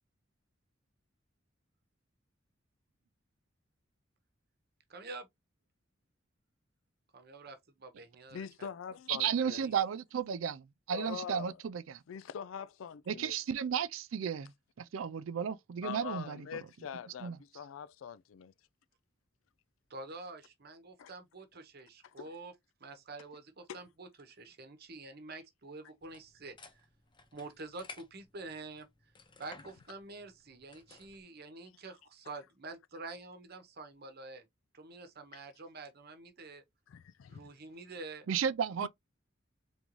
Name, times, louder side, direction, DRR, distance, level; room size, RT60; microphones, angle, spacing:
voice 1, 4.9-5.3 7.1-8.7 9.4-9.8 19.9-22.5 22.8-26.9 27.3-28.9 29.4-34.5 34.7-36.6 37.3-38.3, right 3 dB, 50° right, 0.9 m, -47 dB
voice 2, 8.3-9.6 10.9-11.6 12.1-13.4 15.8-18.5 21.0-21.1 22.0-22.3 23.7-23.8 35.3-35.4 36.9-37.5, left 7 dB, 80° left, 0.4 m, -44 dB
voice 3, 9.1-12.0 13.1-14.5 14.8-16.5 17.2-17.4 38.3-38.9, right 8 dB, 80° right, 0.4 m, -34 dB
sound 1, 26.0-31.2, left 3 dB, 25° left, 0.8 m, -56 dB
3.9 x 3.6 x 3.0 m
head